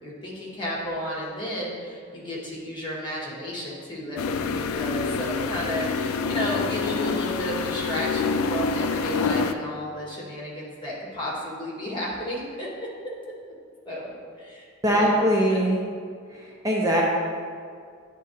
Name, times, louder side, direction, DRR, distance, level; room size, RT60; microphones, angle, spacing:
voice 1, 0.0-12.9 13.8-15.2 15.5-15.6, equal, 25° left, -4 dB, 1.6 m, -33 dB
sound 1, 4.2-9.5, left 5 dB, 85° left, 0.3 m, -27 dB
voice 2, 14.8-15.8 16.3-17.0, equal, 15° right, -3 dB, 0.6 m, -22 dB
9.5 x 3.7 x 4.1 m, 2.2 s
head